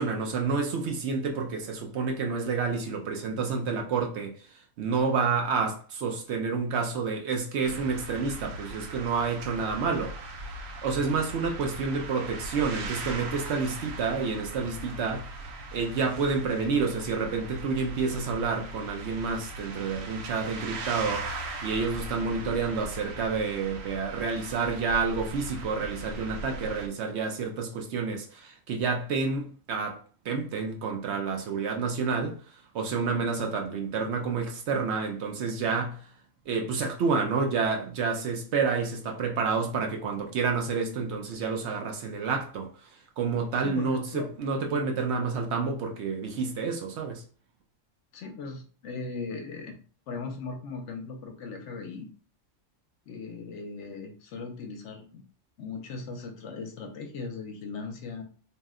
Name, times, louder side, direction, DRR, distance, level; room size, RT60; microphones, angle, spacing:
voice 1, 0.0-4.4 4.8-10.1 10.8-15.3 15.7-30.0 30.2-32.4 32.7-36.1 36.5-42.7 43.2-47.2, right 5 dB, 65° right, 0.8 m, -29 dB
sound 1, 7.6-26.9, right 2 dB, 90° right, 1.0 m, -39 dB
voice 2, 43.6-44.3 48.1-49.8 50.1-52.1 53.1-55.2 55.6-58.2, left 4 dB, 70° left, 0.9 m, -38 dB
2.7 x 2.1 x 3.5 m
omnidirectional pair, 1.3 m